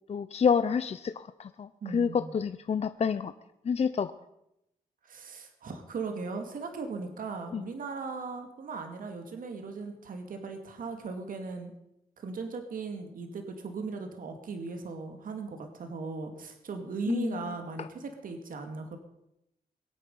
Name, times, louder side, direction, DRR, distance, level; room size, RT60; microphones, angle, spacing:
voice 1, 0.1-3.3 3.6-4.1 7.5-7.6 17.1-17.9, left 6 dB, 45° left, 11 dB, 0.6 m, -29 dB
voice 2, 1.8-2.3 5.0-11.7 12.2-19.0, right 4 dB, 65° right, 5 dB, 2.1 m, -38 dB
22.0 x 9.0 x 5.4 m, 0.83 s
cardioid pair, 100°, 15 cm